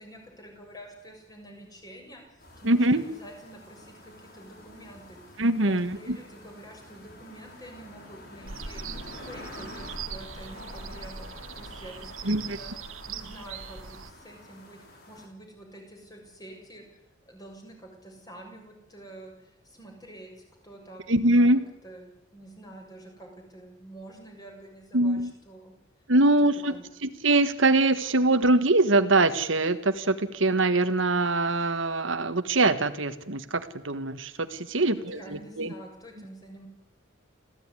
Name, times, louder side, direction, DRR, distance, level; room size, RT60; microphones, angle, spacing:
voice 1, 0.0-5.2 5.6-11.3 11.5-12.7 13.1-17.0 17.3-20.3 20.6-21.2 21.8-25.7 26.7-26.9 34.8-36.7, right 1 dB, 20° left, 2 dB, 7.0 m, -47 dB
sound 1, 2.4-15.3, left 1 dB, 50° left, 6.4 m, -48 dB
voice 2, 2.6-3.0 5.4-6.2 12.2-12.6 21.1-21.6 24.9-25.3 26.1-35.7, right 2 dB, 70° right, 10 dB, 1.5 m, -23 dB
sound 2, 8.4-14.1, right 5 dB, 85° right, 1.7 m, -40 dB
26.5 x 16.0 x 9.8 m, 0.88 s
head